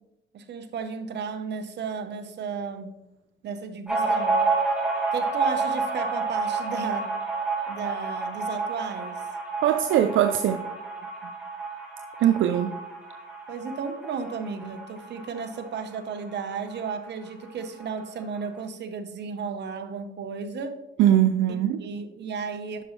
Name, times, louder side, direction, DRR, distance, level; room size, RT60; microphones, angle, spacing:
voice 1, 0.3-2.9 3.4-4.4 5.1-7.2 7.7-9.2 13.5-20.8 21.8-22.8, right 5 dB, 60° right, 8 dB, 1.0 m, -34 dB
sound 1, 3.9-17.0 17.3-17.4 17.7-18.4, right 4 dB, 5° right, 2.3 m, -30 dB
voice 2, 9.6-10.6 12.2-12.7 21.0-21.8, right 11 dB, 75° right, 9 dB, 0.5 m, -21 dB
9.7 x 6.3 x 3.2 m, 0.93 s
cardioid pair, 90°, 20 cm